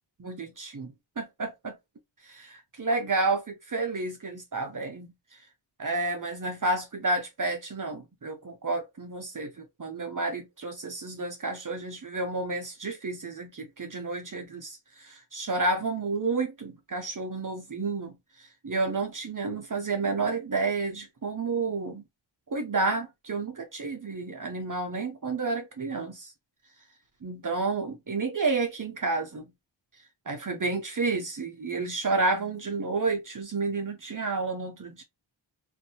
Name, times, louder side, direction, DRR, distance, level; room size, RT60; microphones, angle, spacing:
voice 1, 0.2-1.7 2.2-5.1 5.8-18.2 18.6-22.0 22.5-26.3 27.2-29.5 30.3-35.0, right 3 dB, 40° right, 0.7 m, -30 dB
2.7 x 2.5 x 2.8 m
wide cardioid pair, 65°, 48 cm